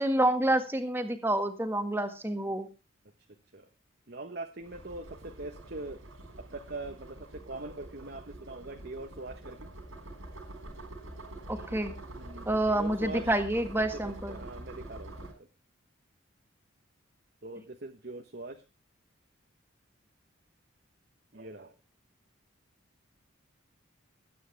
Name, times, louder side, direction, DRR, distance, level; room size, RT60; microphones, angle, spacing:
voice 1, 0.0-2.7 11.5-12.0 12.4-14.4, right 1 dB, 10° right, 7 dB, 1.7 m, -28 dB
voice 2, 4.1-6.0 6.4-9.7 12.2-13.3 13.9-15.3 17.4-18.6 21.3-21.7, right 2 dB, 50° right, 5 dB, 1.3 m, -42 dB
sound 1, 4.6-15.3, right 1 dB, 90° right, 5.6 m, -46 dB
21.5 x 9.4 x 3.4 m, 0.29 s
head